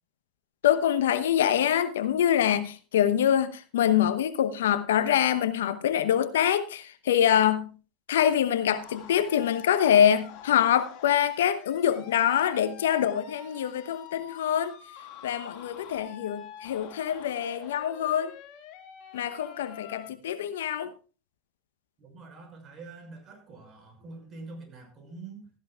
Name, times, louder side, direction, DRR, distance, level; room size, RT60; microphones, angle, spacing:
voice 1, 0.6-7.7 8.1-14.7 15.2-18.3 19.1-20.9, left 10 dB, 75° left, 0.9 m, -25 dB
sound 1, 8.8-20.1, left 9 dB, 55° left, 1.9 m, -46 dB
voice 2, 22.0-25.5, right 3 dB, 40° right, 5.9 m, -45 dB
16.0 x 14.0 x 2.4 m
hypercardioid pair, 80°, 0 cm